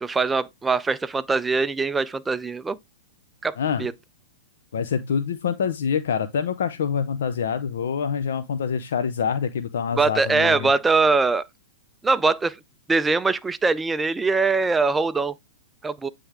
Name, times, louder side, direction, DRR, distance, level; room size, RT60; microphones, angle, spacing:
voice 1, 0.0-2.8 3.4-3.5 3.8-3.9 10.0-11.4 12.0-12.6 12.9-15.3 15.8-16.1, right 4 dB, 10° right, 0.3 m, -22 dB
voice 2, 3.6-3.9 4.7-10.7, left 7 dB, 75° left, 0.5 m, -26 dB
8.8 x 3.3 x 3.4 m
hypercardioid pair, 130°, 0 cm